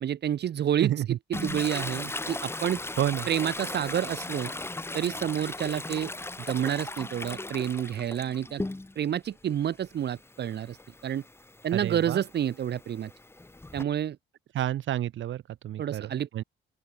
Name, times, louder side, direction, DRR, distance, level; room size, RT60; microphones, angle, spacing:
voice 1, 0.0-2.8 3.3-4.5 4.9-6.1 6.4-8.6 9.0-10.8 11.0-11.2 11.6-13.1 13.7-14.2 15.8-16.4, right 10 dB, 55° right, 1.2 m, -29 dB
voice 2, 0.8-1.2 3.0-3.3 11.7-12.2 14.5-16.4, right 12 dB, 75° right, 3.5 m, -30 dB
Toilet flush, 1.3-9.1 9.5-13.8, left 2 dB, 10° left, 1.5 m, -38 dB
open air
cardioid pair, 90°, 20 cm